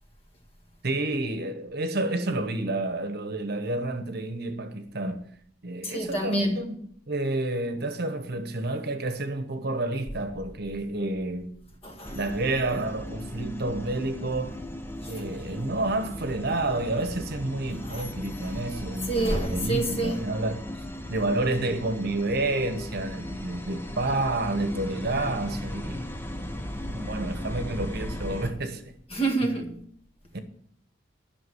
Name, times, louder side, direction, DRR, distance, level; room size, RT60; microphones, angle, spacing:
voice 1, 0.8-5.2 5.6-6.8 7.1-11.5 12.1-14.6 15.1-20.6 21.1-26.1 26.9-28.9 30.3-30.4, right 2 dB, 55° right, 1.1 m, -29 dB
voice 2, 5.8-6.6 11.8-12.2 15.0-15.2 17.9-18.1 18.4-18.6 19.0-20.2 29.1-29.8, right 2 dB, 30° left, 1.8 m, -28 dB
sound 1, 12.0-28.5, left 1 dB, 10° left, 0.8 m, -37 dB
11.0 x 6.1 x 7.8 m
head